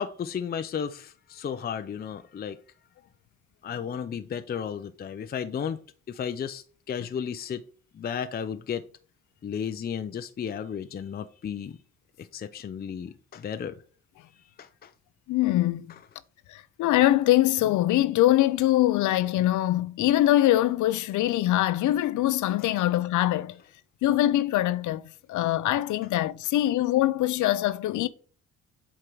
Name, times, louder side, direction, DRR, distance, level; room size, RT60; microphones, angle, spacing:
voice 1, 0.0-2.6 3.6-5.8 6.1-7.6 7.9-8.8 9.4-11.8 12.2-13.8 14.6-14.9 15.9-16.0, left 7 dB, 30° left, 0.5 m, -33 dB
voice 2, 15.3-15.9 16.5-23.5 24.0-25.0 25.3-28.1, left 14 dB, 75° left, 0.6 m, -23 dB
7.6 x 3.7 x 4.7 m
cardioid pair, 90°, 30 cm